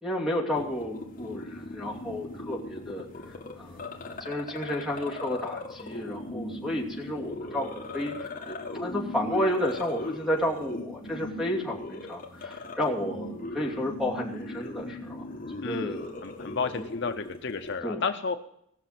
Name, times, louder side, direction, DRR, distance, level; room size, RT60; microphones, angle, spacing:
voice 1, 0.0-3.1 3.6-3.9 4.2-15.3 15.6-16.5 16.8-16.9 17.8-18.0, left 1 dB, ahead, 0 dB, 2.7 m, -32 dB
sound 1, 0.6-17.8, left 2 dB, 40° left, 1.9 m, -39 dB
voice 2, 15.6-18.4, left 5 dB, 55° left, 7 dB, 0.7 m, -32 dB
19.0 x 6.6 x 7.6 m, 0.73 s
head